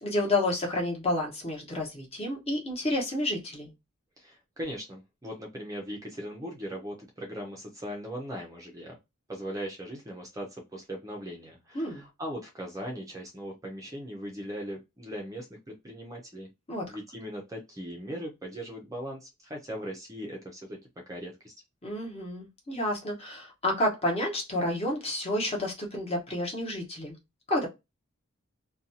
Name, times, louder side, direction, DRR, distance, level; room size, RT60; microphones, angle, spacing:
voice 1, 0.0-3.7 11.7-12.1 16.7-16.9 21.8-27.2 27.5-27.7, left 1 dB, 30° left, 1.0 m, -30 dB
voice 2, 4.2-9.0 9.3-16.5 16.8-20.8 21.1-21.5, equal, 15° right, 0.5 m, -39 dB
2.6 x 2.2 x 2.7 m
head